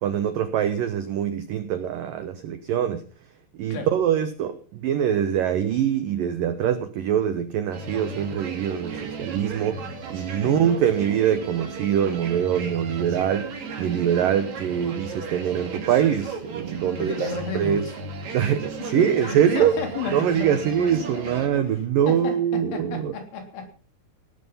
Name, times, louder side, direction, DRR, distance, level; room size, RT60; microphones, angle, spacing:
voice 1, 0.0-3.0 3.6-17.3 17.5-17.9 18.3-19.7 20.1-23.1, right 9 dB, 80° right, 2.0 m, -24 dB
sound 1, 7.7-21.5, right 4 dB, 45° right, 3.2 m, -35 dB
voice 2, 16.8-18.0 18.8-21.1 21.4-21.6 22.1-23.7, left 4 dB, 75° left, 5.8 m, -33 dB
17.5 x 12.5 x 5.6 m
omnidirectional pair, 5.4 m